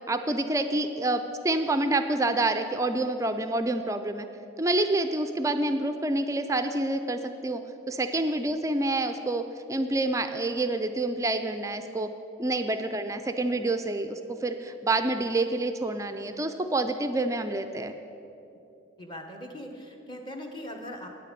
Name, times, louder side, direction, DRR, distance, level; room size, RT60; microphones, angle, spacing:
voice 1, 0.1-4.3 4.6-7.6 7.9-9.4 9.7-12.1 12.4-17.9, right 2 dB, 15° right, 8 dB, 0.3 m, -27 dB
voice 2, 19.0-21.1, left 1 dB, 20° left, 3 dB, 0.9 m, -40 dB
9.0 x 6.7 x 8.4 m, 2.8 s
head